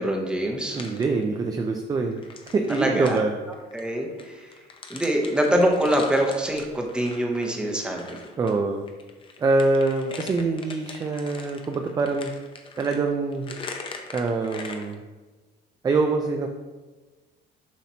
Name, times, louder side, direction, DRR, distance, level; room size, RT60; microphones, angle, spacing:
voice 1, 0.0-0.8 2.7-3.2 3.7-4.5 4.9-8.2, right 1 dB, 5° right, 1 dB, 0.8 m, -24 dB
sound 1, 0.7-1.7 2.1-8.6 8.9-14.9, left 4 dB, 30° left, 0.6 m, -42 dB
voice 2, 0.7-3.3 8.4-8.9 9.4-12.3 12.8-13.6 14.1-15.0 15.8-16.5, right 3 dB, 20° right, 3 dB, 0.4 m, -24 dB
7.3 x 5.7 x 2.8 m, 1.2 s
cardioid pair, 165°, 18 cm